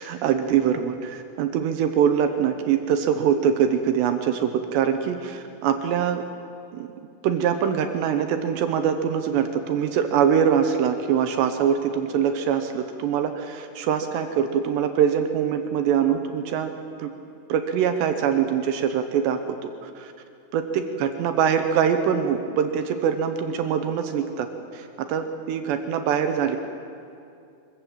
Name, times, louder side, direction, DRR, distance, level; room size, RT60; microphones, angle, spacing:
voice 1, 0.0-6.2 6.7-6.9 7.2-16.7 17.0-17.1 17.5-20.1 20.5-26.6, right 8 dB, 75° right, 7 dB, 2.8 m, -23 dB
23.5 x 15.5 x 7.4 m, 2.5 s
omnidirectional pair, 5.5 m